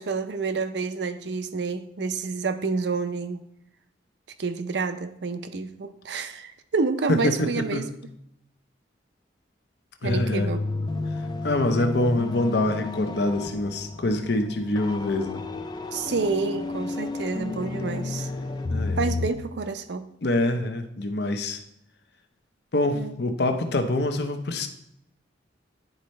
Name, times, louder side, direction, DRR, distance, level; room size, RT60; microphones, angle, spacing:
voice 1, 0.0-3.4 4.4-7.9 10.0-10.6 11.7-11.9 15.9-18.3 19.0-20.1 22.9-23.2, right 4 dB, 65° right, 10 dB, 0.5 m, -29 dB
voice 2, 7.1-7.9 10.0-10.5 11.4-15.4 18.7-19.0 20.2-21.6 22.7-24.7, left 1 dB, 60° left, 7 dB, 0.7 m, -25 dB
sound 1, 10.0-19.3, left 3 dB, 25° left, 0.3 m, -31 dB
10.5 x 4.3 x 3.2 m, 0.77 s
head